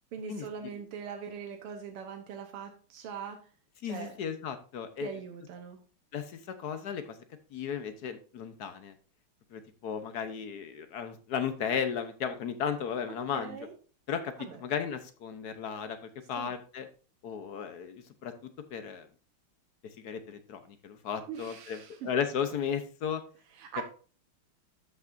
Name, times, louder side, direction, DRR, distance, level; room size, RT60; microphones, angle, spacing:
voice 1, 0.1-3.5 3.8-4.2 5.0-5.8 13.1-13.7 14.4-14.6 16.4-16.5 21.3-22.1 23.5-23.8, right 7 dB, 85° right, 6 dB, 1.9 m, -42 dB
voice 2, 3.8-5.1 6.1-7.2 7.5-8.9 9.5-13.6 14.1-14.3 14.6-16.0 16.3-16.9 17.2-18.3 18.7-19.1 20.0-21.8 22.0-23.2 23.8-23.9, left 7 dB, 60° left, 9 dB, 1.1 m, -35 dB
13.0 x 6.1 x 2.5 m, 0.37 s
omnidirectional pair, 2.4 m